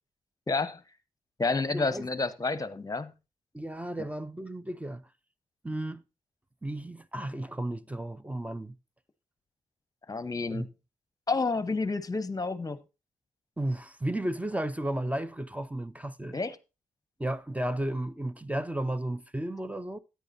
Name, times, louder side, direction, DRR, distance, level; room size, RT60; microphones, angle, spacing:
voice 1, 0.5-0.8 1.4-3.1 10.1-10.7 11.3-12.8 16.3-16.6, left 3 dB, 25° left, 1.0 m, -29 dB
voice 2, 1.7-2.1 3.5-5.0 5.6-6.0 6.6-8.8 10.5-10.6 13.6-16.4 17.2-20.0, right 1 dB, 10° right, 0.6 m, -33 dB
13.5 x 9.2 x 2.7 m
supercardioid pair, 55°, 14 cm